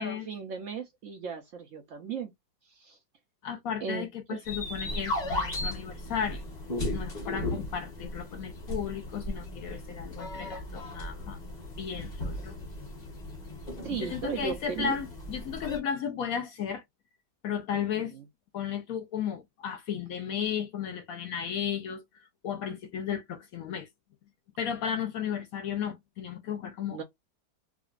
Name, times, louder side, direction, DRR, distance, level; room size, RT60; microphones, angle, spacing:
voice 1, 0.0-2.3 2.7-3.0 3.8-4.4 13.8-15.0 17.7-18.2 26.9-27.0, right 6 dB, 65° right, 0.8 m, -36 dB
voice 2, 3.4-6.4 6.9-11.4 11.8-12.6 14.0-16.8 17.4-18.2 18.5-23.9 24.6-27.0, left 8 dB, 70° left, 0.9 m, -34 dB
sound 1, 4.5-15.8, left 1 dB, 30° left, 0.9 m, -36 dB
4.8 x 2.1 x 2.4 m
omnidirectional pair, 1.8 m